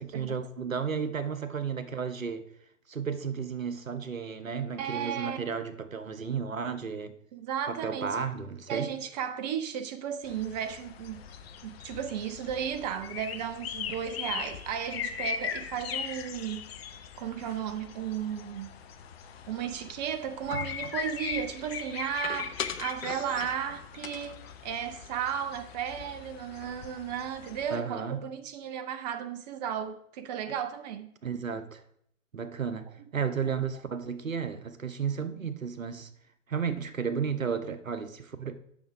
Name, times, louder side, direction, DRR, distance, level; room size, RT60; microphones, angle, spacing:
voice 1, 0.0-2.5 2.9-7.2 7.7-8.9 27.7-28.2 31.2-31.8 32.3-36.1 36.5-38.6, right 6 dB, 85° right, 0.9 m, -33 dB
voice 2, 4.8-5.4 7.3-8.2 8.7-11.2 11.6-16.6 17.2-18.7 19.5-31.1, right 8 dB, 35° right, 0.6 m, -34 dB
sound 1, 10.2-27.8, left 8 dB, 50° left, 0.9 m, -40 dB
sound 2, 20.5-21.1 22.2-23.7 24.0-25.8 26.1-26.2 26.5-27.0, left 6 dB, 80° left, 0.7 m, -40 dB
8.6 x 6.0 x 4.7 m
figure-of-eight pair, 110°, 39 cm